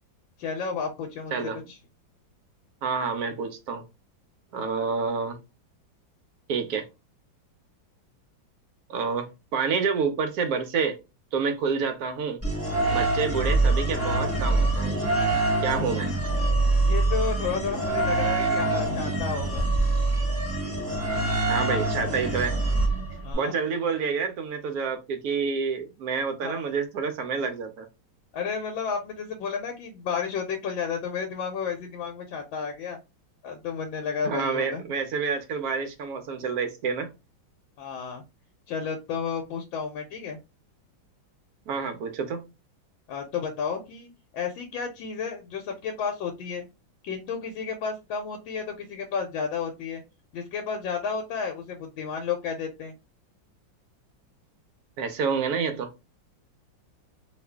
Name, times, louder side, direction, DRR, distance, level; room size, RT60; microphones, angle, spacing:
voice 1, 0.4-1.3 1.7-1.8 16.8-19.7 23.2-23.5 26.4-26.7 28.3-33.0 33.4-34.8 37.8-38.2 38.7-40.4 43.1-46.7 47.0-50.0 50.3-52.9, left 6 dB, 85° left, 1.4 m, -32 dB
voice 2, 2.8-3.8 4.5-5.4 6.5-6.9 8.9-11.0 11.3-12.4 12.9-15.0 15.6-16.1 21.5-22.6 23.3-27.9 34.2-37.1 41.7-42.4 55.0-55.9, right 5 dB, 75° right, 0.8 m, -28 dB
sound 1, 12.4-23.3, right 2 dB, 10° right, 0.7 m, -25 dB
3.0 x 2.4 x 3.3 m
omnidirectional pair, 2.1 m